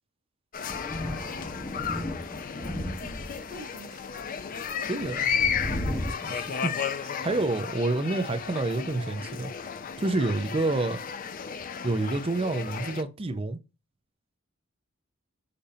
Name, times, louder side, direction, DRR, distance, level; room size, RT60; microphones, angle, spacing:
sound 1, 0.5-13.0, left 7 dB, 40° left, 0.4 m, -34 dB
Thunder, 0.7-3.6 4.2-6.1, equal, 20° left, 0.8 m, -34 dB
voice 1, 3.0-4.3 4.7-4.8, right 2 dB, 80° right, 1.2 m, -48 dB
voice 2, 4.9-5.3 6.2-9.5 10.0-11.0 11.8-13.6, right 2 dB, 25° right, 0.5 m, -28 dB
6.7 x 2.6 x 2.6 m
head